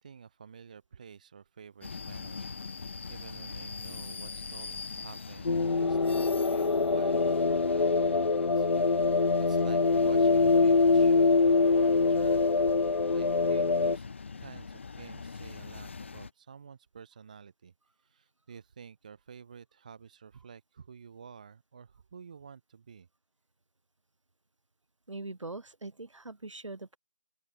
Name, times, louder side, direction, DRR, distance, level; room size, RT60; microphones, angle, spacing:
voice 1, 0.0-8.7 8.9-12.7 13.1-14.0 14.4-17.7 18.0-23.1, right 6 dB, 15° right, 0.9 m, -50 dB
sound 1, 1.8-16.3, left 5 dB, 20° left, 1.0 m, -43 dB
sound 2, 5.5-14.0, left 4 dB, 50° left, 0.4 m, -24 dB
voice 2, 25.1-27.0, right 2 dB, 60° right, 7.4 m, -42 dB
open air
figure-of-eight pair, 165°, 18 cm